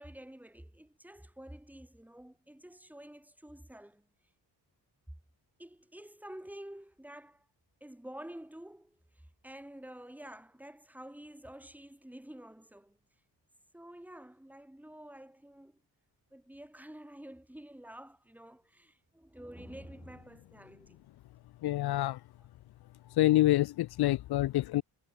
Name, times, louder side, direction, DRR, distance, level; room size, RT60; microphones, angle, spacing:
voice 1, 0.0-4.1 5.6-7.5 7.8-9.0 9.4-13.0 13.7-15.8 16.3-21.0 22.4-22.5, right 1 dB, 5° right, 3.9 m, -49 dB
voice 2, 21.6-22.2 23.2-24.8, left 15 dB, 70° left, 0.5 m, -26 dB
wide cardioid pair, 165°, 40 cm